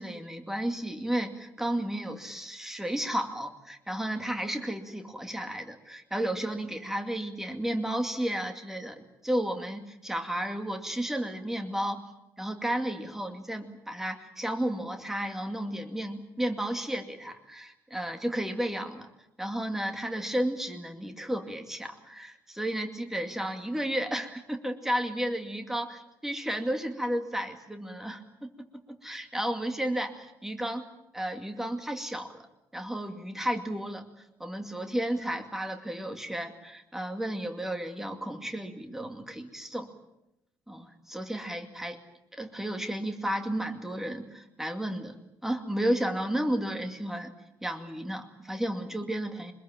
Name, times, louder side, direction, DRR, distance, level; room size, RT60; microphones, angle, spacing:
voice 1, 0.0-12.1 12.4-19.1 19.4-30.8 31.1-32.5 32.7-34.1 34.4-39.9 40.7-42.0 42.3-45.2 45.4-47.3 47.6-49.5, right 1 dB, 5° right, 6 dB, 2.3 m, -33 dB
24.5 x 21.5 x 8.9 m, 0.88 s
cardioid pair, 145°, 8 cm